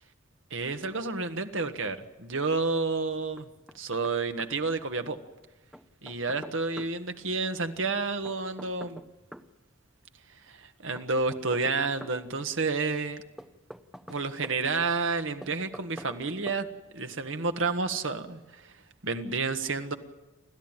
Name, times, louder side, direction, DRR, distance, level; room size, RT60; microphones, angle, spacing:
voice 1, 0.5-3.5 3.7-5.2 6.0-9.0 10.5-13.2 14.1-16.7 16.9-18.4 19.0-19.9, right 3 dB, 70° right, 7 dB, 1.6 m, -30 dB
Knock, 3.4-4.1 4.4-4.5 5.7-6.9 8.3-9.5 11.0-12.2 13.4-14.6 15.4-16.2 16.5-16.6, equal, ahead, 0.8 m, -45 dB
29.5 x 12.5 x 9.1 m, 1.1 s
head